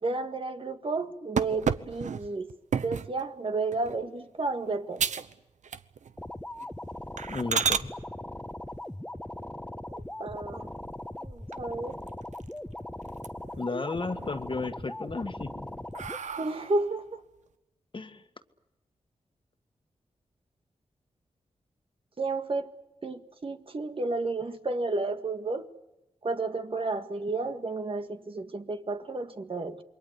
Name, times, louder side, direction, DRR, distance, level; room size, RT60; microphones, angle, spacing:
voice 1, 0.0-2.5 2.8-5.0 9.9-10.7 11.2-12.0 16.4-17.2 22.2-22.7 23.0-25.7 26.2-29.8, right 3 dB, 45° right, 1.9 m, -32 dB
sound 1, 1.4-3.1 3.7-4.0 4.4-4.5 5.0-5.3 5.6-6.2 6.5-6.7 7.2-7.9 9.9-10.5 11.0-11.1 11.5-11.6 11.9-12.7 13.0-13.6 14.0-14.7 15.2-16.9, right 6 dB, 75° right, 1.0 m, -32 dB
sound 2, 6.2-16.2, left 1 dB, 10° left, 1.4 m, -40 dB
voice 2, 7.3-7.9 13.6-15.8 17.9-18.2, left 3 dB, 40° left, 1.9 m, -34 dB
28.0 x 22.5 x 8.3 m
cardioid pair, 55°, 13 cm